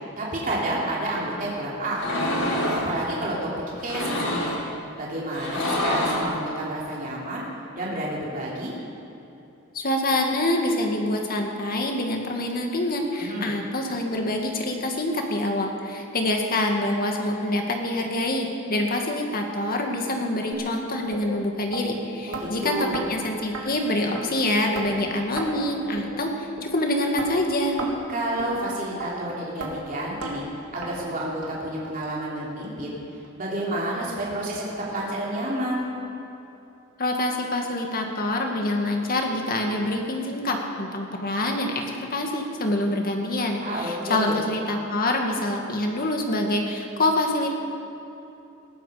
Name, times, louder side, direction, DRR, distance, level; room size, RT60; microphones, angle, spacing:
voice 1, 0.2-2.4 2.7-3.5 3.8-4.5 5.0-7.4 7.8-8.7 13.2-13.5 22.3-23.0 28.1-30.5 30.7-32.9 33.4-35.8 43.6-44.4, right 1 dB, 40° right, -5 dB, 3.1 m, -30 dB
sound 1, 1.9-2.9 3.8-4.6 5.3-6.3, left 1 dB, 80° left, 4.4 m, -26 dB
voice 2, 9.7-27.8 37.0-47.5, left 1 dB, 45° left, 2 dB, 2.0 m, -26 dB
sound 2, 20.5-20.7 21.1-21.2 21.7-21.8 22.3-22.5 22.9-23.1 23.5-23.6 24.1-24.2 24.7-24.9 25.4-25.5 26.0-26.1 26.6-26.7 27.2-27.3 27.8-28.0 28.4-28.5 29.0-29.1 29.6-29.7 30.2-30.3 30.8-30.9 31.4-31.5 32.0-32.1 32.6-32.7 33.2-33.3, right 3 dB, 85° right, 2.5 m, -33 dB
19.5 x 14.5 x 5.1 m, 2.9 s
head